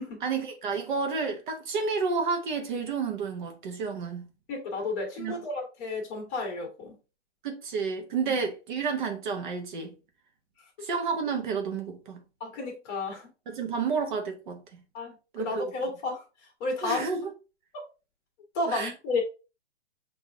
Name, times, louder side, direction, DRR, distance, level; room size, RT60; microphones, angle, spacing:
voice 1, 0.2-4.3 5.2-5.4 7.4-9.9 10.8-12.2 13.5-14.8 15.3-15.6 16.8-17.3 18.7-18.9, right 5 dB, 45° right, 0.9 m, -30 dB
voice 2, 4.5-6.9 12.4-13.3 14.9-16.2 16.6-17.0 17.7-17.8 18.5-19.2, left 3 dB, 25° left, 1.4 m, -32 dB
5.8 x 2.6 x 3.4 m
hypercardioid pair, 155°, 34 cm